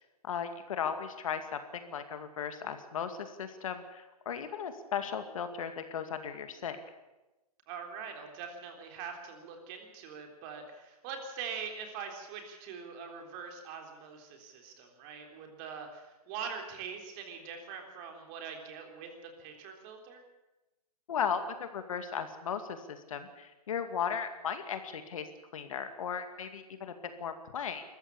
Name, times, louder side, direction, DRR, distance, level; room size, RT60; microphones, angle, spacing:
voice 1, 0.2-6.8 21.1-25.3 25.5-27.8, left 7 dB, 60° left, 8 dB, 2.3 m, -36 dB
voice 2, 7.7-20.2, right 6 dB, 30° right, 3 dB, 3.7 m, -43 dB
21.5 x 14.5 x 8.7 m, 1.0 s
hypercardioid pair, 145°, 20 cm